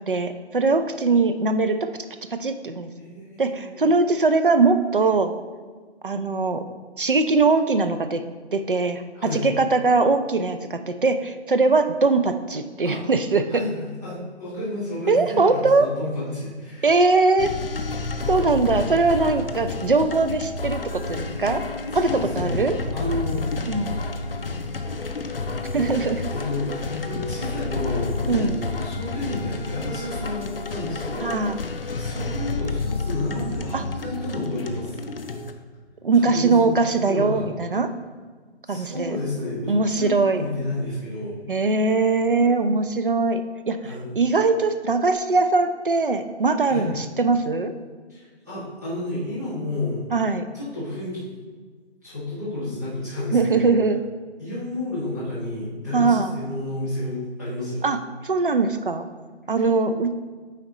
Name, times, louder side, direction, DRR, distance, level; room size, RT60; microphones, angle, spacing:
voice 1, 0.1-1.8 2.3-2.9 3.4-5.3 6.0-6.6 7.0-8.2 8.5-9.0 9.4-13.6 15.1-15.9 16.8-17.6 18.3-21.6 21.9-22.8 23.7-24.0 25.7-26.2 28.3-28.6 31.2-31.6 33.7-33.8 36.0-37.9 38.7-39.2 39.7-40.4 41.5-47.7 50.1-50.4 53.3-54.0 55.9-56.3 57.8-58.0 58.2-59.1 59.5-60.1, right 3 dB, 50° right, 8 dB, 0.4 m, -21 dB
voice 2, 3.0-3.8 9.1-9.5 12.8-13.0 13.5-17.0 21.9-22.6 22.9-23.5 25.6-25.9 26.3-31.4 32.0-35.0 36.1-37.5 38.6-41.4 43.8-44.1 46.6-46.9 48.1-50.0 50.5-51.3 52.0-53.7 54.4-57.9, left 1 dB, 15° right, -13 dB, 1.0 m, -31 dB
sound 1, 17.4-35.5, left 3 dB, 55° left, 0.5 m, -30 dB
8.9 x 4.2 x 3.0 m, 1.5 s
figure-of-eight pair, 180°, 34 cm